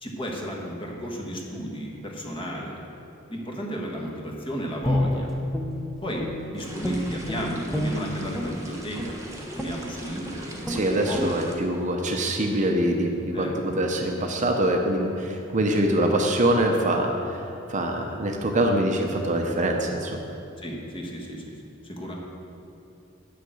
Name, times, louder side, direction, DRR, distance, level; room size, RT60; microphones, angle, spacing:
voice 1, 0.0-2.8 3.3-5.3 6.0-6.3 6.5-11.5 13.3-13.6 20.6-21.5 21.8-22.2, equal, 25° left, -1 dB, 1.4 m, -33 dB
Guitar, 4.8-6.5 6.8-8.5 8.9-9.2 9.6-9.8 10.2-10.4 10.6-10.8 11.1-11.3, left 1 dB, ahead, 0.8 m, -28 dB
sound 1, 6.6-11.5, right 1 dB, 15° right, 1.2 m, -41 dB
voice 2, 10.7-17.4 17.7-20.2, right 1 dB, 35° right, 2 dB, 0.8 m, -24 dB
8.9 x 6.6 x 6.3 m, 2.9 s
head